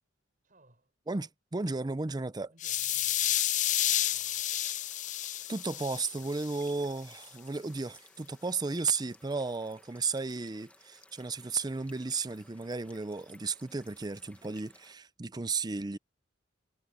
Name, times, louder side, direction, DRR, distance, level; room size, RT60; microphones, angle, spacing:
voice 1, 0.4-0.9 2.4-3.4 3.9-4.5 8.1-8.2, right 1 dB, 45° right, 7.0 m, -63 dB
voice 2, 1.1-2.5 5.5-16.0, right 4 dB, 20° right, 0.5 m, -34 dB
sound 1, 2.6-6.7, left 12 dB, 40° left, 0.5 m, -31 dB
sound 2, 3.6-15.0, left 1 dB, 5° left, 1.4 m, -60 dB
head